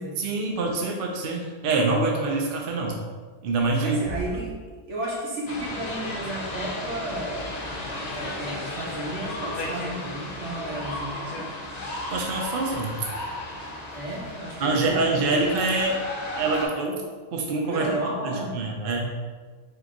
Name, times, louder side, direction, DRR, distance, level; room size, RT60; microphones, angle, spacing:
voice 1, 0.2-3.0 3.4-4.0 11.9-12.9 14.6-16.0 16.4-17.9 18.2-19.1, right 3 dB, 55° right, 0 dB, 0.7 m, -25 dB
voice 2, 3.8-4.6 4.9-7.5 8.1-11.5 13.9-15.5 17.7-18.6, right 1 dB, 75° right, -3 dB, 1.2 m, -33 dB
Bass drum, 4.0-5.5, left 1 dB, 15° left, 1.1 m, -39 dB
sound 1, 5.5-16.7, left 1 dB, 45° left, 0.6 m, -34 dB
3.7 x 2.8 x 3.7 m, 1.5 s
omnidirectional pair, 1.3 m